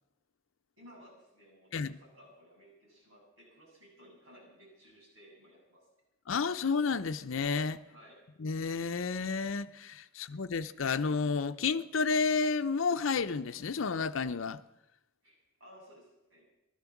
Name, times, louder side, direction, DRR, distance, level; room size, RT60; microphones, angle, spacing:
voice 1, 0.8-5.9 7.9-8.2 15.2-16.4, equal, 80° right, -2 dB, 7.3 m, -57 dB
voice 2, 6.3-7.8 8.4-14.6, left 5 dB, 75° left, 9 dB, 0.6 m, -31 dB
15.5 x 12.0 x 7.2 m, 0.92 s
head